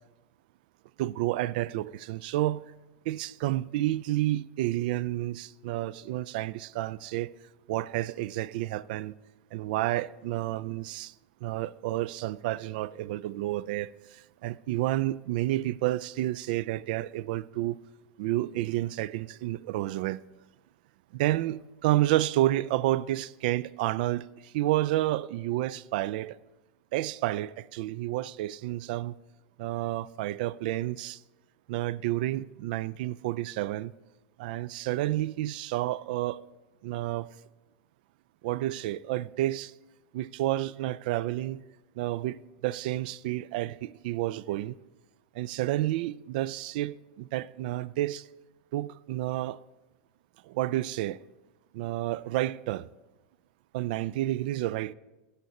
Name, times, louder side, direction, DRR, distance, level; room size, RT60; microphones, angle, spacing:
voice 1, 1.0-2.6 3.1-7.3 7.7-9.2 9.5-11.1 11.4-17.8 18.2-20.2 21.1-26.4 26.9-29.2 29.6-31.2 31.7-33.9 34.4-36.4 36.8-37.3 38.4-39.7 40.1-41.6 42.0-44.8 45.3-48.3 48.7-49.6 50.4-51.2 51.7-52.9 53.7-54.9, right 15 dB, 65° right, 0.3 m, -30 dB
12.5 x 8.1 x 4.2 m
supercardioid pair, 135°, 5 cm